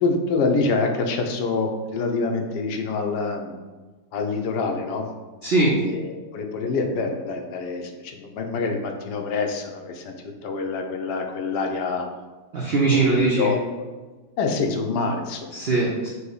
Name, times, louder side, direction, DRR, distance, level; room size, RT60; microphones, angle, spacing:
voice 1, 0.0-3.6 4.1-5.1 5.9-10.1 10.4-12.1 12.9-13.6 14.4-15.6, left 4 dB, 75° left, 3 dB, 1.2 m, -26 dB
voice 2, 5.4-5.8 12.5-13.6 15.5-16.1, right 3 dB, 70° right, -4 dB, 0.5 m, -21 dB
5.6 x 2.1 x 3.9 m, 1.3 s
omnidirectional pair, 1.8 m